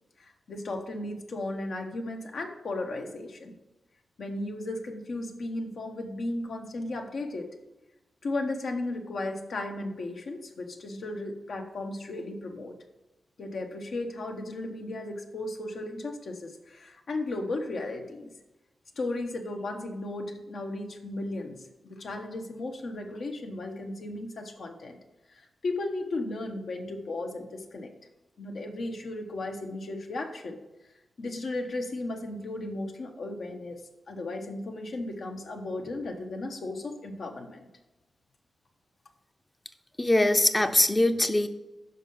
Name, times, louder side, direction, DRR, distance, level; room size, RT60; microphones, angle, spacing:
voice 1, 0.2-3.5 4.2-7.5 8.2-12.7 13.4-18.3 19.0-25.0 25.3-27.9 28.4-30.6 31.2-33.8 34.1-37.7, left 2 dB, 70° left, 3 dB, 1.2 m, -35 dB
voice 2, 40.0-41.5, left 1 dB, 15° left, 9 dB, 0.6 m, -22 dB
7.1 x 5.5 x 5.6 m, 1.0 s
wide cardioid pair, 100°, 0 cm